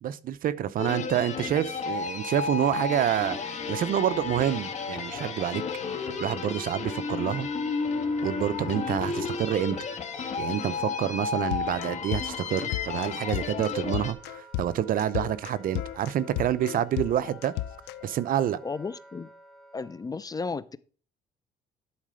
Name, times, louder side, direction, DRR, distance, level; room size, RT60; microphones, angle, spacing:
voice 1, 0.0-5.6 6.2-7.5 8.2-9.8 10.4-17.5 18.0-18.6, right 10 dB, 55° right, 0.7 m, -28 dB
sound 1, 0.8-14.1, left 5 dB, 45° left, 1.4 m, -32 dB
Wind instrument woodwind instrument, 1.3-20.1, right 1 dB, ahead, 1.6 m, -47 dB
sound 2, 11.4-18.1, left 15 dB, 90° left, 0.5 m, -35 dB
voice 2, 18.6-19.3 19.7-20.8, left 4 dB, 20° left, 0.5 m, -34 dB
11.5 x 4.2 x 4.9 m
cardioid pair, 110°, 17 cm